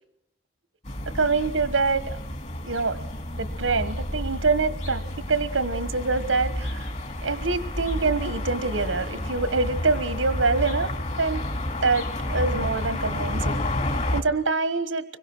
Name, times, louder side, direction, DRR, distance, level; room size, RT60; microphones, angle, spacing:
sound 1, 0.9-14.2, left 1 dB, 35° left, 2.7 m, -30 dB
voice 1, 1.1-2.2 2.6-3.0 3.4-5.0 5.3-6.9 7.2-10.9 11.2-11.4 11.8-12.0 12.3-13.7 14.1-15.0, right 4 dB, 90° right, 13 dB, 1.4 m, -25 dB
25.5 x 23.5 x 6.2 m, 0.76 s
head